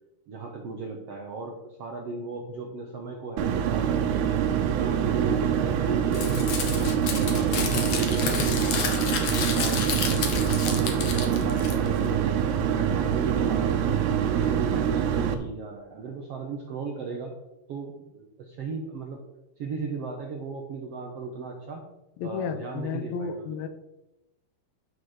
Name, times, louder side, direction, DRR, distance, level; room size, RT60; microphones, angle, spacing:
voice 1, 0.3-4.3 4.8-6.9 7.3-10.2 10.6-12.3 12.7-13.8 14.2-17.3 17.7-19.2 19.6-21.9 22.2-23.6, right 3 dB, 70° right, 1 dB, 1.4 m, -36 dB
sound 1, 3.4-15.4, right 8 dB, 90° right, 3.0 m, -25 dB
Crumpling crinkling, 6.1-12.1, left 5 dB, 55° left, 2.0 m, -30 dB
voice 2, 22.2-23.7, left 6 dB, 80° left, 8 dB, 2.6 m, -32 dB
12.0 x 6.7 x 4.9 m, 0.96 s
omnidirectional pair, 4.4 m